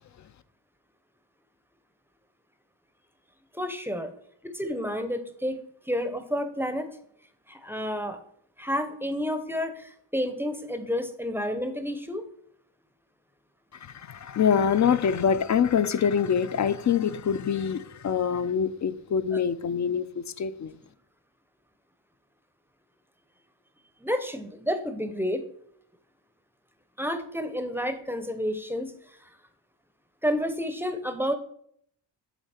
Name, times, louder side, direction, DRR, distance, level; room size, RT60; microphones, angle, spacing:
voice 1, 3.5-4.1 4.4-5.6 5.9-6.9 7.5-8.2 8.6-12.2 24.0-25.5 27.0-28.9 29.2-29.3 30.2-31.3, equal, 5° right, 0.6 m, -30 dB
voice 2, 13.7-20.8, left 7 dB, 40° left, 0.4 m, -25 dB
8.1 x 3.7 x 4.3 m
cardioid pair, 85°, 46 cm